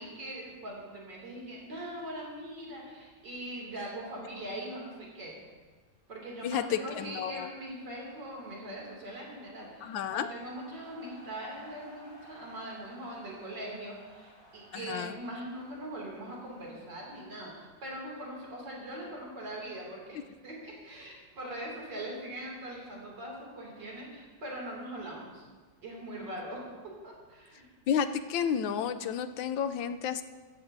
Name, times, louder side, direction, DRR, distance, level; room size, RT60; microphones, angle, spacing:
voice 1, 0.0-5.4 6.1-25.4 25.8-27.7, right 1 dB, 65° right, -3 dB, 3.4 m, -41 dB
voice 2, 6.4-7.5 9.8-10.3 14.7-15.2 27.9-30.2, left 8 dB, 90° left, 10 dB, 1.4 m, -31 dB
sound 1, 7.1-18.4, equal, 65° left, 3.9 m, -58 dB
16.0 x 14.0 x 2.7 m, 1.4 s
omnidirectional pair, 2.1 m